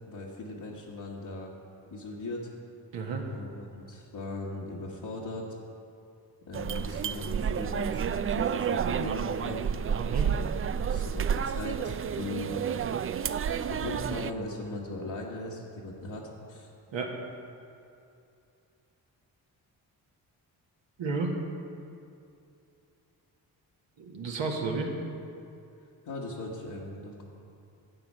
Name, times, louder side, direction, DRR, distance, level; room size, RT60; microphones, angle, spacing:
voice 1, 0.1-1.5 1.9-2.5 3.3-5.5 6.5-9.7 10.7-12.5 13.6-16.7 26.1-27.2, left 2 dB, 60° left, -5 dB, 1.6 m, -39 dB
voice 2, 2.9-3.3 10.0-10.3 16.9-17.2 21.0-21.4 24.0-24.9, right 4 dB, 70° right, 1 dB, 1.8 m, -32 dB
sound 1, 6.5-14.3, right 7 dB, 30° right, 0.4 m, -30 dB
11.0 x 7.6 x 5.6 m, 2.6 s
supercardioid pair, 50°, 46 cm